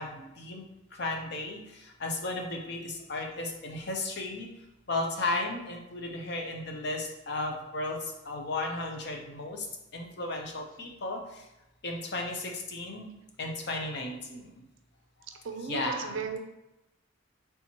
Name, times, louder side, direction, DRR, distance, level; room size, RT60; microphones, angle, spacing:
voice 1, 0.0-4.5 4.9-9.7 9.9-11.4 11.8-13.1 13.4-14.6 15.6-16.3, left 2 dB, 50° left, 1 dB, 0.6 m, -35 dB
voice 2, 15.4-16.4, right 5 dB, 65° right, 6 dB, 0.5 m, -36 dB
4.3 x 3.4 x 2.9 m, 0.94 s
head